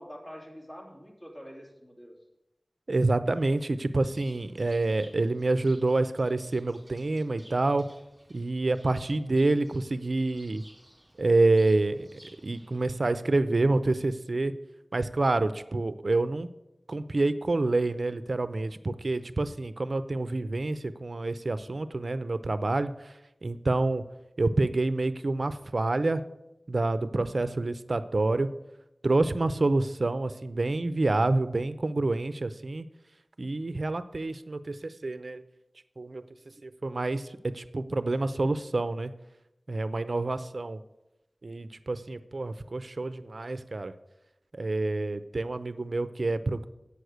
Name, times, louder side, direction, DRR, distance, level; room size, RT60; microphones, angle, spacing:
voice 1, 0.0-2.2, equal, 20° left, -1 dB, 3.0 m, -45 dB
voice 2, 2.9-7.9 8.3-10.6 11.2-14.5 14.9-16.5 16.9-23.1 23.4-24.0 24.4-26.2 26.7-28.5 29.0-32.9 33.4-35.4 36.0-36.3 36.6-39.1 39.7-40.8 41.4-43.9 44.5-46.7, right 2 dB, 65° right, 13 dB, 0.5 m, -27 dB
Bird, 4.0-13.1, right 1 dB, 25° right, 3.1 m, -57 dB
8.4 x 6.4 x 8.0 m, 0.92 s
wide cardioid pair, 50°, 0 cm